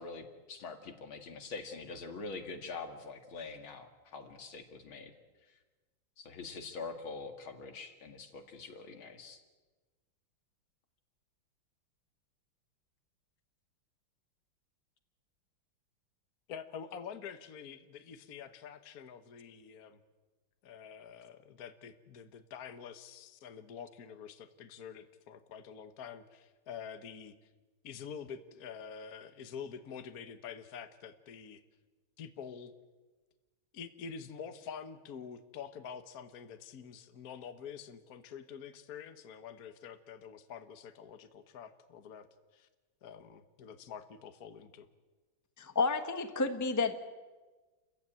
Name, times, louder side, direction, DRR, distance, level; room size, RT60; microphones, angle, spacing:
voice 1, 0.0-5.1 6.2-9.4, left 4 dB, 75° left, 6 dB, 2.8 m, -44 dB
voice 2, 16.5-20.0 20.6-27.3 27.8-31.6 32.2-32.7 33.7-42.3 42.5-42.7 43.0-44.9, left 7 dB, 50° left, 9 dB, 1.5 m, -47 dB
voice 3, 45.6-47.0, left 4 dB, 10° left, 7 dB, 1.0 m, -30 dB
29.0 x 15.5 x 9.0 m, 1.3 s
omnidirectional pair, 2.3 m